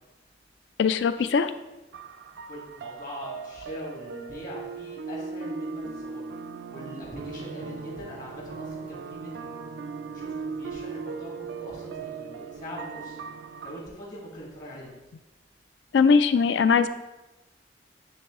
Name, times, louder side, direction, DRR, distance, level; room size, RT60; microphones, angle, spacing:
voice 1, 0.8-1.5 15.9-16.9, left 5 dB, 75° left, 12 dB, 0.4 m, -20 dB
sound 1, 1.9-13.8, right 4 dB, 80° right, 0.4 m, -38 dB
voice 2, 2.5-6.3 6.7-9.5 10.1-13.2 13.6-15.0, equal, 50° left, -3 dB, 1.7 m, -42 dB
8.7 x 3.1 x 3.6 m, 1.0 s
head